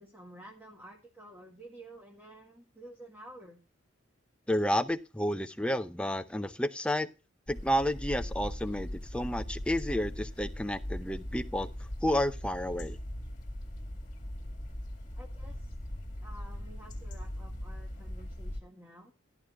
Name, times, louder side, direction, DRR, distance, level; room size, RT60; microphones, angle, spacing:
voice 1, 0.0-3.6 15.1-15.7 16.2-19.1, right 1 dB, 10° right, 1.6 m, -51 dB
voice 2, 4.5-7.1 7.5-11.7 12.0-13.0, equal, 5° left, 0.6 m, -31 dB
sound 1, 7.5-18.6, left 1 dB, 35° left, 1.9 m, -40 dB
16.0 x 11.0 x 2.3 m
head